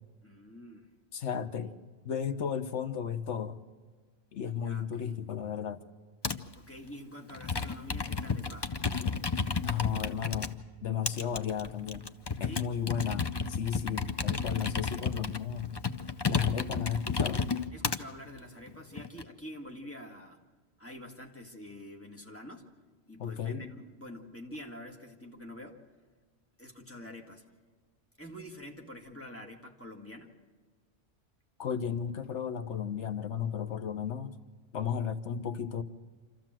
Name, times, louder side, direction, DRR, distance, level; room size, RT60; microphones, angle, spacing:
voice 1, 0.2-0.9 1.6-1.8 4.5-5.2 6.5-8.7 12.4-12.7 17.7-20.4 20.8-22.7 23.1-25.8 26.6-27.5 28.2-30.3, left 1 dB, 10° left, 1 dB, 1.8 m, -46 dB
voice 2, 1.1-1.7 2.0-3.6 4.3-5.8 9.6-12.1 12.4-15.7 16.3-17.5 23.2-23.6 31.6-34.3 34.7-35.8, left 8 dB, 75° left, 10 dB, 1.2 m, -34 dB
Computer keyboard, 6.2-6.5 7.3-10.5 11.1-18.0 18.7-19.2, left 5 dB, 30° left, 0.5 m, -32 dB
26.5 x 14.0 x 7.6 m, 1.5 s
omnidirectional pair, 1.2 m